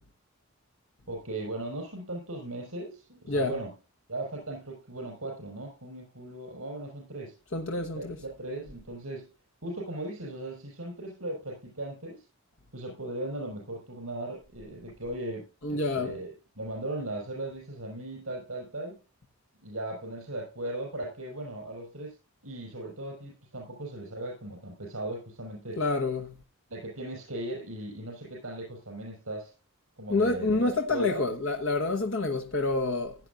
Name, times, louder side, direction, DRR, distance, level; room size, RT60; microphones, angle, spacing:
voice 1, 1.1-3.7 4.1-7.4 7.9-9.3 9.6-12.2 12.7-19.0 19.6-22.2 22.4-25.8 26.7-29.5 30.0-31.2, right 1 dB, 70° right, 5.4 m, -38 dB
voice 2, 7.5-8.2 15.6-16.1 25.8-26.4 30.1-33.1, left 3 dB, 60° left, 1.2 m, -28 dB
16.5 x 9.6 x 2.6 m
head